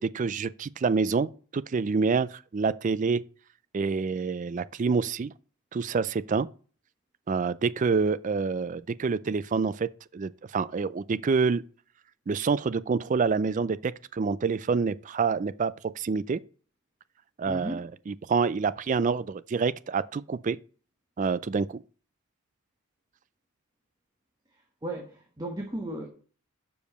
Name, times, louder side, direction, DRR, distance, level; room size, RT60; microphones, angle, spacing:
voice 1, 0.0-3.2 3.7-5.3 5.7-6.5 7.3-11.6 12.3-16.4 17.4-20.6 21.2-21.8, right 5 dB, 35° right, 0.3 m, -27 dB
voice 2, 17.5-17.9 24.5-26.1, right 1 dB, 15° right, 1.0 m, -36 dB
6.9 x 5.1 x 6.5 m
head